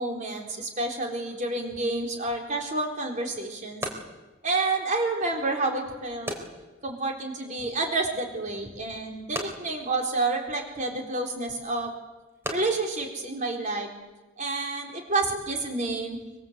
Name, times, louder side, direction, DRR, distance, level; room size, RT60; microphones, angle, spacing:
voice 1, 0.0-3.8 4.4-6.3 6.8-11.9 12.5-13.9 14.4-16.2, right 2 dB, 40° right, 2 dB, 4.1 m, -29 dB
sound 1, 2.7-14.1, equal, 10° right, 3.8 m, -42 dB
25.0 x 24.0 x 8.2 m, 1.1 s
head